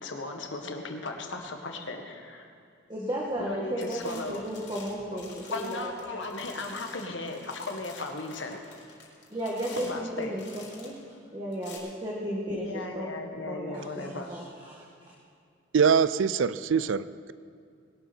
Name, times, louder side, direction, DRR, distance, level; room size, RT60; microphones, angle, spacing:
voice 1, 0.0-2.5 3.4-4.4 5.5-8.6 9.8-10.3 12.5-14.3, left 3 dB, 75° left, 3 dB, 1.8 m, -36 dB
voice 2, 2.9-6.4 9.3-10.4 10.7-10.9 11.3-12.6 12.9-14.8, equal, 25° right, -3 dB, 1.6 m, -34 dB
sound 1, 3.3-3.5 3.8-11.0 11.5-11.8, left 4 dB, 60° left, 4.0 m, -49 dB
voice 3, 15.7-17.3, right 6 dB, 85° right, 16 dB, 0.4 m, -23 dB
21.0 x 12.0 x 4.4 m, 2.4 s
head